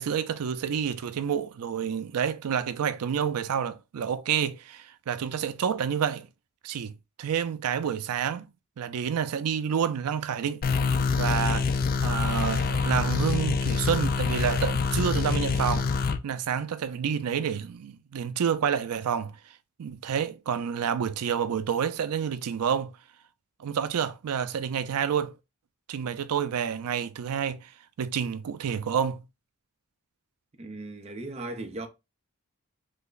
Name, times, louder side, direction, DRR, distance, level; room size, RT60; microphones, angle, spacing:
voice 1, 0.0-6.3 6.6-6.9 7.2-8.5 8.8-10.6 11.2-19.4 19.8-22.9 23.6-25.3 25.9-27.7 28.0-29.2, right 8 dB, 80° right, 0.4 m, -29 dB
sound 1, 10.6-16.2, left 4 dB, 40° left, 0.3 m, -26 dB
voice 2, 30.6-31.9, right 2 dB, 30° right, 0.5 m, -37 dB
3.3 x 2.1 x 3.8 m
head